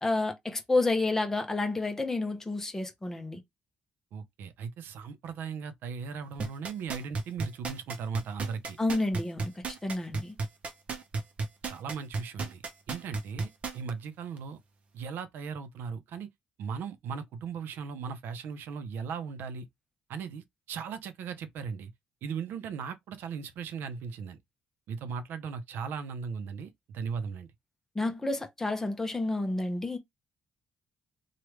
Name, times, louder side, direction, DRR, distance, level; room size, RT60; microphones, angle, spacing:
voice 1, 0.0-3.4 8.8-9.5 9.8-10.3 27.9-30.0, left 2 dB, 10° left, 0.7 m, -30 dB
voice 2, 4.1-8.8 11.6-12.6 12.9-14.6 14.9-16.3 16.6-19.7 20.1-21.9 22.2-24.4 24.9-27.5, right 6 dB, 75° right, 0.6 m, -38 dB
sound 1, 6.4-13.9 14.4-14.5, right 4 dB, 40° right, 0.7 m, -33 dB
3.1 x 2.4 x 3.1 m
cardioid pair, 135°, 4 cm